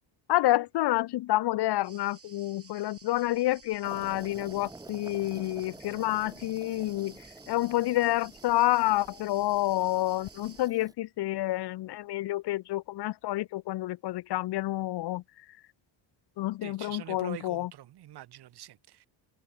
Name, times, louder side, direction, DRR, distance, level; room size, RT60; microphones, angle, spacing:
voice 1, 0.3-7.2 7.5-15.2 16.4-17.7, left 16 dB, 55° left, 0.6 m, -28 dB
sound 1, 1.8-10.7, right 5 dB, 30° right, 2.3 m, -55 dB
sound 2, 3.8-10.9, right 2 dB, 10° right, 0.7 m, -49 dB
voice 2, 16.6-19.1, right 13 dB, 55° right, 1.0 m, -45 dB
cardioid pair, 95°, 49 cm